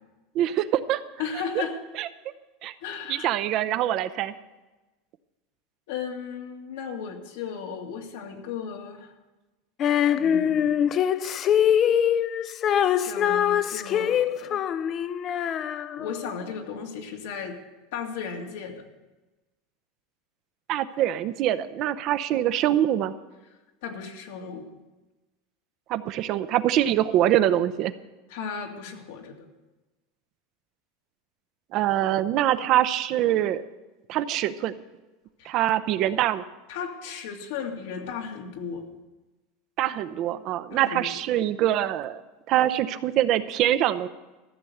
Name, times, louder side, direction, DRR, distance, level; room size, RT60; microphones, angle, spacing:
voice 1, 0.3-1.0 1.5-1.6 2.0-2.1 2.6-2.7 3.1-4.3 20.7-23.1 25.9-27.9 31.7-33.6 34.1-34.7 35.4-36.4 39.8-42.2 42.5-44.1, right 12 dB, 40° right, 13 dB, 0.6 m, -24 dB
voice 2, 1.2-1.8 2.8-3.3 5.9-9.1 10.1-10.9 13.0-14.6 15.7-17.6 17.9-18.8 23.8-24.6 28.3-29.5 35.4-35.5 36.7-38.8 40.7-41.1, left 6 dB, 75° left, 2 dB, 2.1 m, -35 dB
Female singing, 9.8-16.3, left 9 dB, 30° left, 0.4 m, -23 dB
14.0 x 7.0 x 7.8 m, 1.1 s
supercardioid pair, 150°, 0 cm